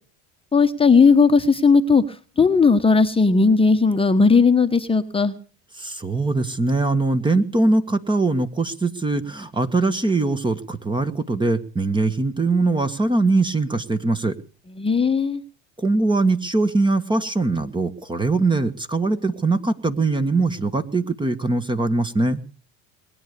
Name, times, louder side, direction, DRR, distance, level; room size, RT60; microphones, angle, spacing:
voice 1, 0.5-2.0 2.4-5.3 14.8-15.4, left 4 dB, 15° left, 7 dB, 1.2 m, -16 dB
voice 2, 5.8-14.4 15.8-22.4, right 3 dB, 15° right, 11 dB, 1.5 m, -22 dB
21.0 x 9.6 x 6.8 m, 0.41 s
hypercardioid pair, 85°, 33 cm